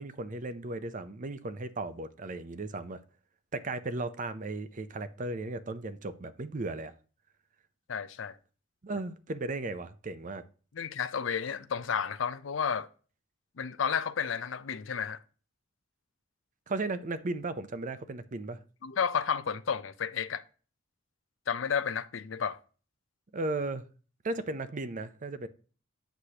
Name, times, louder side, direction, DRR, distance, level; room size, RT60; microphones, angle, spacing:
voice 1, 0.0-3.0 3.5-6.9 8.8-10.4 16.7-18.6 23.3-23.8 24.2-25.5, right 2 dB, 40° right, 0.6 m, -36 dB
voice 2, 7.9-8.4 10.7-12.9 13.6-15.2 18.8-20.4 21.5-22.6, left 7 dB, 70° left, 0.5 m, -32 dB
8.1 x 6.3 x 2.9 m
head